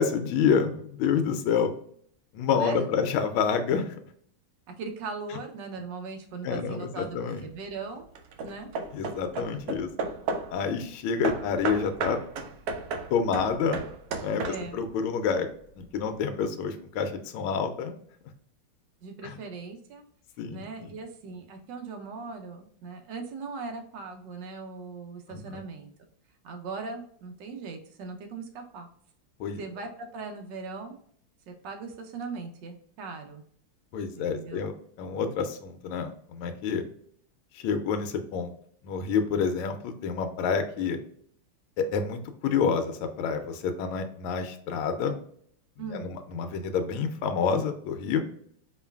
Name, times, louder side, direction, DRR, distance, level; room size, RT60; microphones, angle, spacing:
voice 1, 0.0-1.7 2.3-3.9 6.4-7.4 8.9-9.9 10.5-12.2 13.1-13.8 14.2-15.5 15.8-17.9 19.2-19.4 20.4-20.9 25.3-25.6 29.4-29.6 33.9-34.7 35.0-36.8 37.5-38.5 38.8-41.0 41.8-45.1 46.0-48.2, left 6 dB, 85° left, 7 dB, 1.4 m, -28 dB
voice 2, 2.5-3.0 4.8-8.1 8.4-8.7 14.5-14.8 19.0-20.0 20.5-25.9 26.4-28.9 29.6-31.0 31.5-33.4 34.2-34.6 45.8-46.1, right 4 dB, 70° right, 4 dB, 1.2 m, -39 dB
Hammer / Wood, 7.0-7.5 8.1-10.6 11.2-14.9, right 4 dB, 85° right, 0.8 m, -34 dB
4.3 x 3.1 x 2.3 m, 0.62 s
omnidirectional pair, 2.3 m